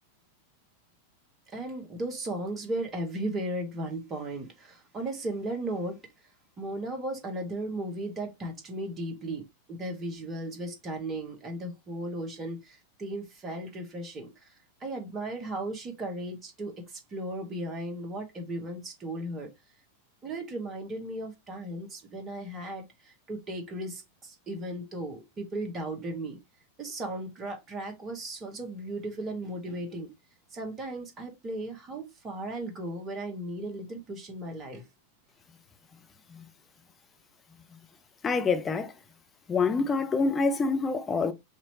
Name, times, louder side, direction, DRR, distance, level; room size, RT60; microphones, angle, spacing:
voice 1, 1.5-6.0 6.6-14.5 14.8-19.5 20.2-26.4 26.8-30.1 30.5-34.8, right 1 dB, 25° right, 1.5 m, -36 dB
voice 2, 38.2-38.9 39.5-41.3, left 4 dB, 20° left, 0.7 m, -26 dB
4.9 x 2.9 x 2.9 m
figure-of-eight pair, 90°, 0 cm